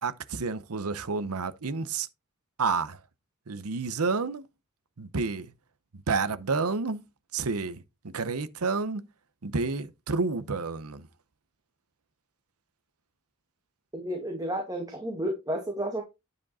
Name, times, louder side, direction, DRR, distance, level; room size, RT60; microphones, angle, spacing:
voice 1, 0.0-2.1 2.6-3.0 3.5-4.5 5.0-5.5 5.9-7.1 7.3-9.0 9.4-11.1, right 4 dB, 75° right, 0.8 m, -30 dB
voice 2, 13.9-16.0, right 1 dB, 15° right, 1.9 m, -31 dB
9.7 x 5.2 x 4.2 m
head